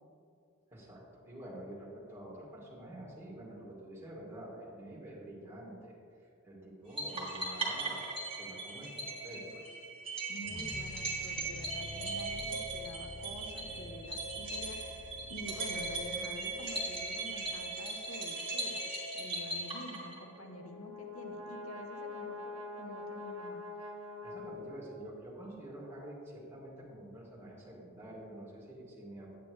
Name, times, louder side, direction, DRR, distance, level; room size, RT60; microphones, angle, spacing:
voice 1, 0.7-9.8 23.8-23.9 24.2-29.4, right 1 dB, 10° right, -6 dB, 2.1 m, -48 dB
sound 1, 7.0-20.4, right 2 dB, 30° right, 1.9 m, -38 dB
voice 2, 10.3-14.9 15.3-18.8 19.1-23.6, equal, 75° left, 3 dB, 0.9 m, -48 dB
sound 2, 10.5-17.7, left 1 dB, 15° left, 0.5 m, -50 dB
Brass instrument, 20.1-25.2, left 3 dB, 75° right, 1.0 m, -44 dB
9.3 x 9.1 x 3.2 m, 2.4 s
head